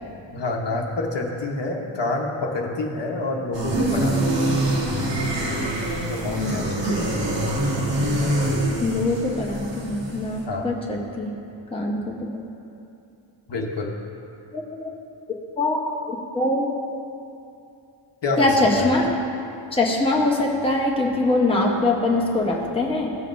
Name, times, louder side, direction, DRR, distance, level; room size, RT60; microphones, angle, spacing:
voice 1, 0.3-4.4 6.1-7.0 7.3-7.4 10.5-10.7 13.5-14.0 18.2-18.9, left 2 dB, 55° left, 0 dB, 1.0 m, -28 dB
sound 1, 3.5-10.4, right 1 dB, 55° right, 1.4 m, -24 dB
voice 2, 8.8-11.3 11.7-12.5 14.5-14.9 15.6-16.6 18.4-19.1 19.7-23.2, left 2 dB, 10° left, -3 dB, 0.9 m, -23 dB
16.0 x 7.5 x 2.6 m, 2.7 s
wide cardioid pair, 180°, 50 cm